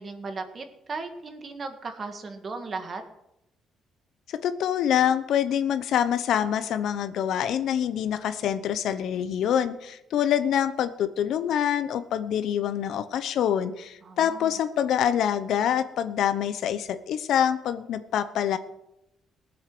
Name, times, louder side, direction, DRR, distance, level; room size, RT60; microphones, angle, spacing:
voice 1, 0.0-3.0 14.0-14.5, right 4 dB, 35° right, 7 dB, 1.7 m, -36 dB
voice 2, 4.3-18.6, left 9 dB, 70° left, 12 dB, 0.9 m, -26 dB
18.5 x 8.0 x 6.2 m, 0.86 s
cardioid pair, 135°, 0 cm